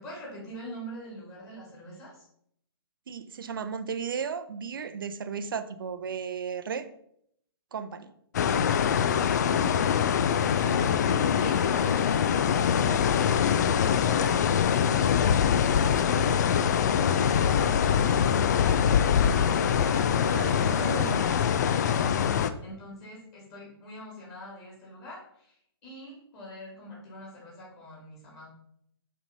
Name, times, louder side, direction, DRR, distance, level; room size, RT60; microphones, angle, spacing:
voice 1, 0.0-2.3 10.5-25.5 25.8-28.5, equal, 25° left, -4 dB, 2.8 m, -43 dB
voice 2, 3.1-6.9 7.7-8.1 20.1-21.3, right 6 dB, 55° right, 11 dB, 0.6 m, -35 dB
sound 1, 8.3-22.5, left 8 dB, 40° left, 0.4 m, -24 dB
5.5 x 4.0 x 5.3 m, 0.69 s
figure-of-eight pair, 120°, 13 cm